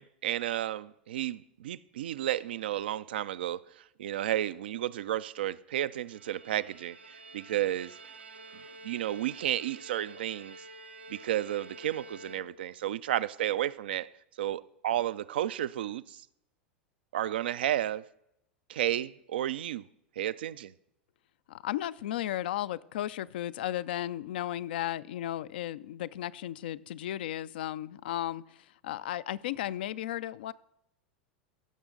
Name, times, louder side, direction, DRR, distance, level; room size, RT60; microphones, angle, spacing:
voice 1, 0.0-8.0 8.8-10.6 11.1-14.1 14.4-16.2 17.1-18.1 18.7-19.8 20.2-20.7, right 12 dB, 70° right, 0.4 m, -32 dB
Bowed string instrument, 5.9-12.9, right 2 dB, 90° right, 1.0 m, -50 dB
voice 2, 21.5-30.5, left 13 dB, 70° left, 0.4 m, -35 dB
15.5 x 6.2 x 3.8 m
hypercardioid pair, 90°, 6 cm